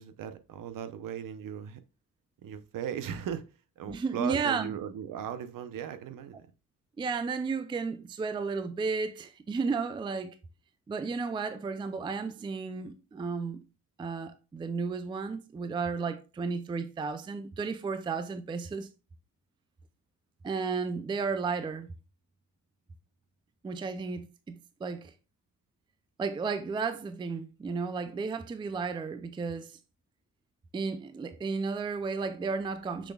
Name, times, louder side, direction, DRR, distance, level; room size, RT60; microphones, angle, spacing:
voice 1, 0.0-1.8 2.4-3.5 3.8-6.4, right 9 dB, 65° right, 0.8 m, -37 dB
voice 2, 3.9-4.8 7.0-10.4 10.9-13.6 14.0-18.9 20.4-21.9 23.6-25.1 26.2-29.8 30.7-33.1, right 4 dB, 15° right, 0.4 m, -33 dB
6.6 x 6.2 x 2.3 m
cardioid pair, 160°, 35 cm